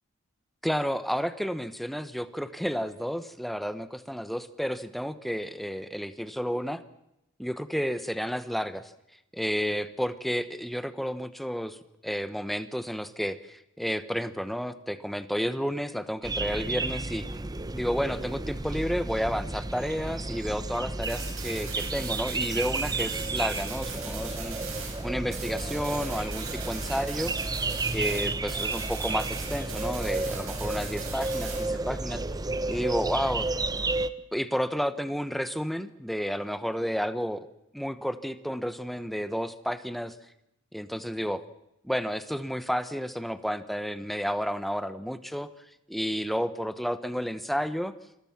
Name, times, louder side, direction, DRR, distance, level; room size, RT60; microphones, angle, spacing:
voice 1, 0.6-6.8 7.4-8.9 9.3-11.8 12.0-17.2 17.7-24.6 25.0-27.3 27.9-32.2 32.7-33.5 34.3-37.5 37.7-40.1 40.7-41.4 41.8-45.5 45.9-47.9, equal, ahead, 12 dB, 1.1 m, -31 dB
sound 1, 16.2-34.1, right 2 dB, 20° right, 0.8 m, -32 dB
sound 2, 21.0-25.1 25.3-31.7, right 6 dB, 75° right, 7.2 m, -40 dB
28.0 x 22.0 x 5.9 m, 0.84 s
head